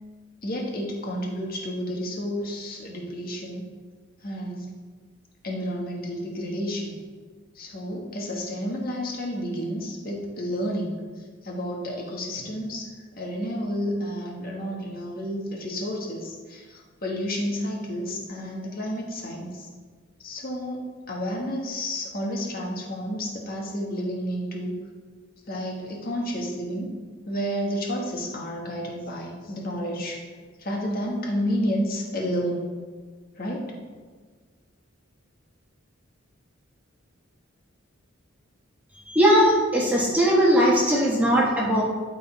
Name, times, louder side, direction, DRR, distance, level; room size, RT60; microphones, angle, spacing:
voice 1, 0.4-3.6 4.2-4.7 5.4-7.0 7.5-11.0 11.4-12.9 13.1-19.7 20.2-24.7 25.5-26.9 27.2-30.2 30.6-32.7 33.4-33.7, equal, 45° left, -1 dB, 1.6 m, -30 dB
voice 2, 39.1-41.8, equal, 10° right, -4 dB, 1.2 m, -19 dB
11.0 x 4.0 x 4.6 m, 1.5 s
head